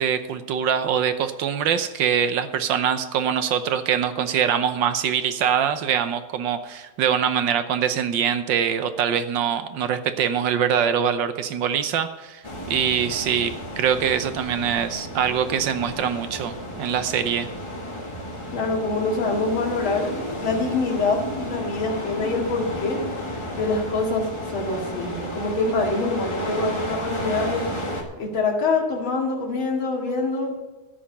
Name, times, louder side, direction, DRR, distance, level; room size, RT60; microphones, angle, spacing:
voice 1, 0.0-17.5, right 8 dB, 65° right, 10 dB, 1.4 m, -23 dB
sound 1, 12.4-28.0, equal, 15° left, 1.4 m, -33 dB
voice 2, 18.5-20.1 20.4-27.8 28.2-30.5, left 3 dB, 65° left, -1 dB, 2.9 m, -25 dB
13.5 x 5.1 x 8.7 m, 1.2 s
omnidirectional pair, 2.4 m